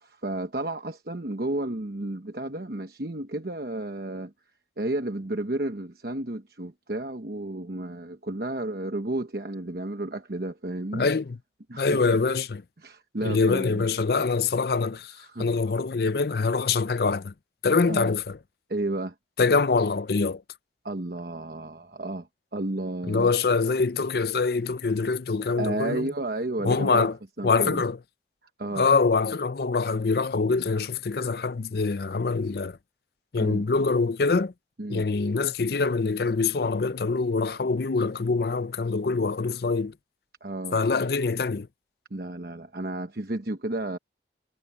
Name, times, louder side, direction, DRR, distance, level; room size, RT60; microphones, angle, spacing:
voice 1, 0.0-4.3 4.8-11.1 11.7-12.2 12.8-13.9 15.2-15.5 17.9-18.1 18.7-19.1 20.8-22.3 22.5-23.3 25.6-27.1 27.4-27.8 28.6-28.9 33.4-33.6 34.8-35.0 40.4-40.8 42.1-44.0, right 2 dB, 55° right, 1.1 m, -32 dB
voice 2, 10.9-11.4 11.8-12.6 13.2-17.3 17.6-18.4 19.4-20.4 23.1-26.1 26.6-27.2 27.4-28.0 28.7-32.8 33.3-34.5 34.9-39.9 40.7-41.7, left 4 dB, 60° left, 0.5 m, -24 dB
head